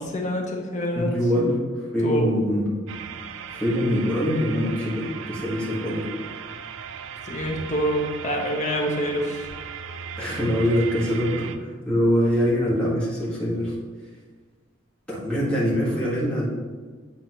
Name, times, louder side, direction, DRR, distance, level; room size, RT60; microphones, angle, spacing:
voice 1, 0.0-1.5 2.0-2.3 7.2-9.5, equal, 35° left, 0 dB, 0.9 m, -26 dB
voice 2, 1.0-2.7 3.5-6.1 10.2-13.7 15.1-16.5, equal, 5° left, -7 dB, 1.6 m, -24 dB
sound 1, 2.9-11.6, right 7 dB, 75° right, 0.4 m, -37 dB
8.9 x 4.1 x 3.0 m, 1.5 s
head